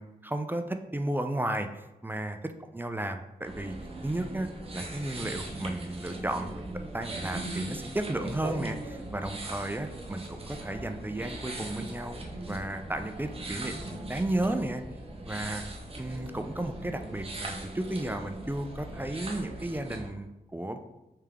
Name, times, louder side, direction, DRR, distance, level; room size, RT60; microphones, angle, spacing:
voice 1, 0.0-3.8 4.0-6.6 6.9-12.2 12.5-14.8 15.3-15.6 16.0-20.8, right 1 dB, 10° right, 7 dB, 0.3 m, -34 dB
sound 1, 3.4-20.1, right 1 dB, 35° right, 0.8 m, -39 dB
3.3 x 3.3 x 3.4 m, 0.97 s
cardioid pair, 50°, 17 cm